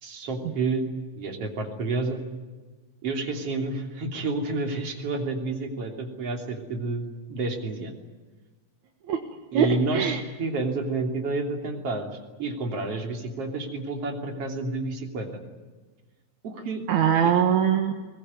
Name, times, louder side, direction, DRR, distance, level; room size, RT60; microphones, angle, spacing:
voice 1, 0.0-0.9 1.2-2.2 3.0-8.0 9.5-15.4 16.4-16.8 17.2-17.4, right 3 dB, 50° right, 2 dB, 4.1 m, -30 dB
voice 2, 9.5-10.2 16.9-17.9, right 8 dB, 75° right, 4 dB, 2.8 m, -22 dB
22.0 x 21.0 x 9.6 m, 1.3 s
omnidirectional pair, 3.4 m